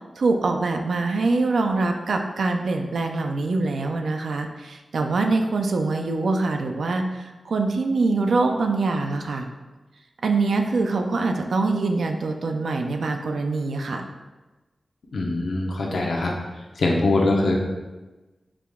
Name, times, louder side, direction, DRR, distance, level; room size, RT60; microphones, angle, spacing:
voice 1, 0.2-9.5 10.2-14.0, right 3 dB, 85° right, 4 dB, 0.4 m, -24 dB
voice 2, 15.1-16.3 16.8-17.6, left 2 dB, 85° left, 0 dB, 0.7 m, -22 dB
4.8 x 2.3 x 3.5 m, 1.2 s
wide cardioid pair, 115°, 0 cm